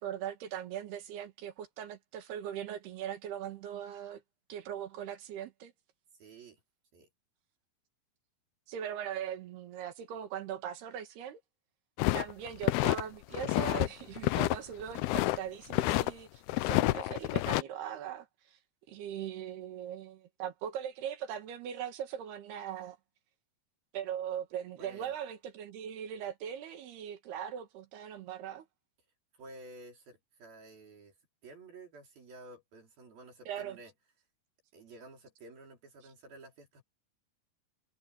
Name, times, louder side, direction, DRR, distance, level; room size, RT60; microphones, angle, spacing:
voice 1, 0.0-4.2 4.5-5.7 8.7-11.4 12.2-18.6 18.9-23.0 23.9-28.7 33.5-33.8, right 9 dB, 90° right, 3.9 m, -40 dB
voice 2, 6.2-6.6 6.9-7.1 24.8-25.2 29.3-31.2 31.4-33.9 34.7-36.8, right 2 dB, 70° right, 6.4 m, -52 dB
sound 1, 12.0-13.0 13.3-13.9 14.2-15.4 15.7-16.1 16.5-17.6, left 18 dB, 85° left, 2.7 m, -28 dB
omnidirectional pair, 4.5 m